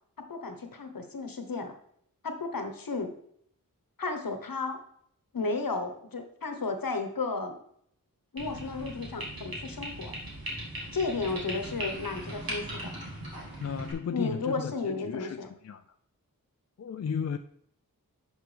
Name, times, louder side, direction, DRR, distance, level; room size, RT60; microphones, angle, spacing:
voice 1, 0.2-1.7 2.2-3.1 4.0-4.8 5.3-7.6 8.3-10.2 10.9-12.9 14.1-15.5, left 3 dB, 70° left, 1.1 m, -33 dB
sound 1, 8.4-13.9, right 1 dB, 85° right, 2.3 m, -39 dB
voice 2, 13.6-15.4 15.6-15.8 16.8-17.4, left 6 dB, 45° left, 0.4 m, -34 dB
10.5 x 4.9 x 3.3 m
wide cardioid pair, 45°, 35 cm